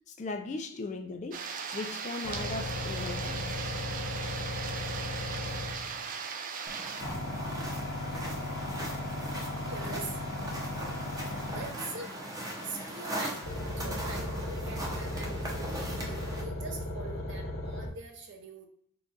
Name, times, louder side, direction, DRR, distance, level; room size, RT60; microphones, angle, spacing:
voice 1, 0.1-1.4 1.7-3.5, left 3 dB, 35° left, 5 dB, 0.4 m, -38 dB
sound 1, 1.3-7.0, right 6 dB, 40° right, 0.4 m, -38 dB
sound 2, 2.2-6.0 7.0-12.0 13.4-17.9, left 1 dB, 70° left, 0.8 m, -36 dB
sound 3, 6.7-16.4, right 1 dB, 15° right, 0.7 m, -39 dB
voice 2, 9.6-10.2 11.6-12.3 12.6-13.5 13.8-18.7, right 3 dB, 55° right, 3 dB, 0.7 m, -43 dB
3.7 x 2.4 x 3.9 m, 0.64 s
head